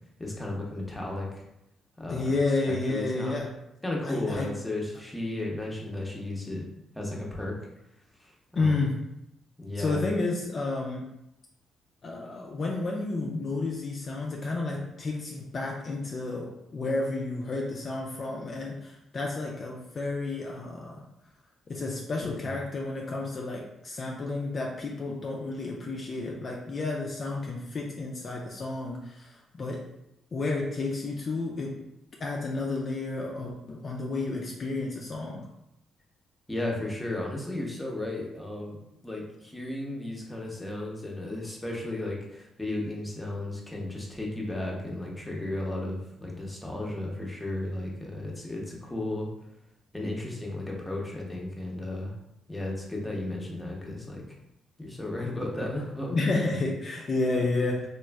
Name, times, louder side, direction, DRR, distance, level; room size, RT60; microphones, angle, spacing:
voice 1, 0.2-1.3 2.0-2.4 2.7-3.4 3.8-6.6 6.9-7.5 8.2-8.8 9.6-10.1 22.2-22.5 36.5-49.3 49.9-52.1 52.5-54.2 54.8-56.1, left 1 dB, 10° left, -2 dB, 0.7 m, -34 dB
voice 2, 2.1-3.6 4.0-4.6 8.6-9.1 9.8-11.1 12.0-21.0 21.7-29.9 30.3-31.9 32.2-35.5 56.1-57.9, left 3 dB, 45° left, -1 dB, 0.3 m, -31 dB
3.0 x 2.4 x 2.2 m, 0.85 s
cardioid pair, 90°, 0 cm